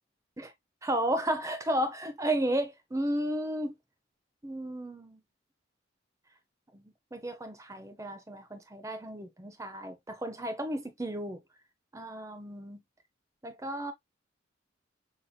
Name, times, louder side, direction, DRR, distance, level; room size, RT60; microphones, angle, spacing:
voice 1, 0.8-3.7 4.4-5.2 6.7-6.8 7.1-11.4 11.9-12.8 13.4-13.9, right 1 dB, 15° right, 0.6 m, -33 dB
5.6 x 2.8 x 2.2 m
head